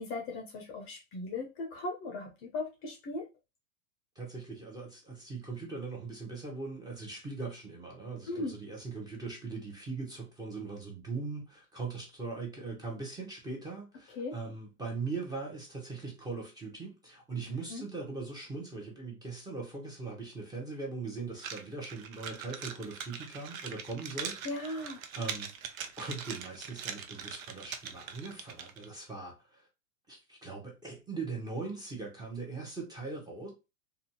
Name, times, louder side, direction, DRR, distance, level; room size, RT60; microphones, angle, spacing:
voice 1, 0.0-3.3 8.3-8.5 14.1-14.4 17.5-17.9 24.4-25.0, left 2 dB, 30° left, 0.6 m, -38 dB
voice 2, 4.2-24.4 25.2-25.5 26.0-29.7 30.1-33.5, right 3 dB, 10° right, 0.8 m, -40 dB
sound 1, 21.4-28.9, right 7 dB, 75° right, 0.6 m, -42 dB
2.5 x 2.3 x 2.8 m
hypercardioid pair, 120°, 42 cm